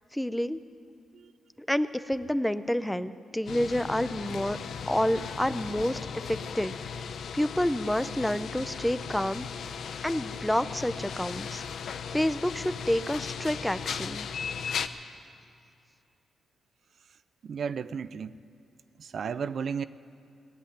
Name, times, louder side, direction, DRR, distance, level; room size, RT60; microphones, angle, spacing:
voice 1, 0.1-0.6 1.7-4.6 4.9-6.9 7.3-9.5 10.0-14.3, left 1 dB, 5° left, 13 dB, 0.5 m, -29 dB
sound 1, 3.5-14.9, left 6 dB, 70° left, 0.6 m, -37 dB
voice 2, 17.4-18.4 19.0-19.8, right 6 dB, 60° right, 14 dB, 0.4 m, -33 dB
18.5 x 8.0 x 9.9 m, 2.6 s
cardioid pair, 85°, 0 cm